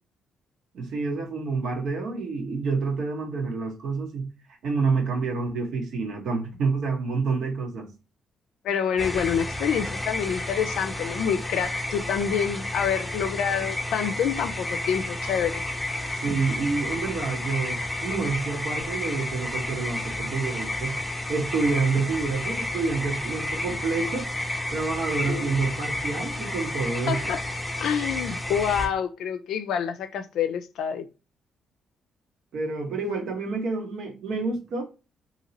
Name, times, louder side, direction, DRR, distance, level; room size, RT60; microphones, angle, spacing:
voice 1, 0.7-4.3 4.6-7.9 16.2-21.0 21.3-24.3 24.7-27.3 32.5-34.8, right 4 dB, 70° right, 1.0 m, -28 dB
voice 2, 8.6-15.6 25.3-25.5 27.1-27.4 27.8-31.1, left 8 dB, 80° left, 0.4 m, -27 dB
sound 1, 9.0-28.9, left 1 dB, 10° left, 0.8 m, -31 dB
2.9 x 2.7 x 2.7 m
cardioid pair, 90°, 0 cm